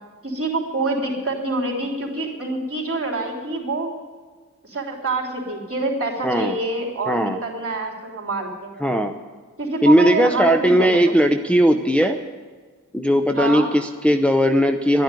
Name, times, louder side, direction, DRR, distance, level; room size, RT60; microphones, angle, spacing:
voice 1, 0.2-3.9 4.6-8.7 9.6-11.1 13.4-13.7, right 2 dB, 45° right, -1 dB, 3.6 m, -26 dB
voice 2, 6.2-6.6 7.1-7.4 8.8-9.1 9.8-12.2 12.9-15.0, equal, 5° left, 5 dB, 0.7 m, -18 dB
12.0 x 10.5 x 9.7 m, 1.4 s
wide cardioid pair, 55°, 31 cm